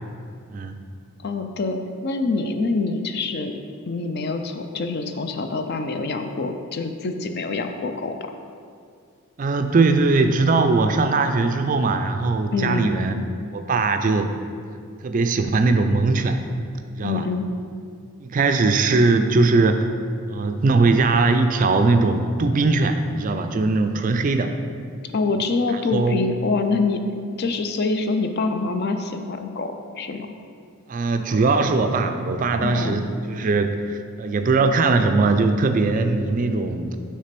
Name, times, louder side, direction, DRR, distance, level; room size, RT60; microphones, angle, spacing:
voice 1, 1.2-8.3 12.5-13.0 17.0-17.5 25.1-30.3 32.6-33.0, left 3 dB, 45° left, 6 dB, 0.4 m, -25 dB
voice 2, 9.4-13.2 13.5-14.3 15.0-16.4 16.9-17.2 18.2-19.9 20.3-24.6 25.9-26.2 30.9-37.0, right 3 dB, 35° right, 7 dB, 0.3 m, -20 dB
6.4 x 3.3 x 5.9 m, 2.3 s
head